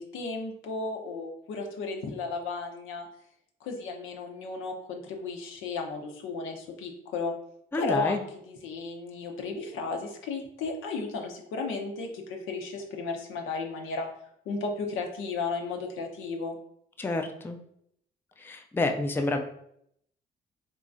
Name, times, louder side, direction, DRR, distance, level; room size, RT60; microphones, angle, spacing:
voice 1, 0.0-3.1 3.6-7.3 7.7-14.1 14.5-16.6, left 3 dB, 90° left, 2 dB, 0.7 m, -34 dB
voice 2, 7.7-8.2 17.0-17.6 18.4-19.4, left 2 dB, 10° left, 5 dB, 0.3 m, -29 dB
3.6 x 3.1 x 2.5 m, 0.72 s
cardioid pair, 90°, 20 cm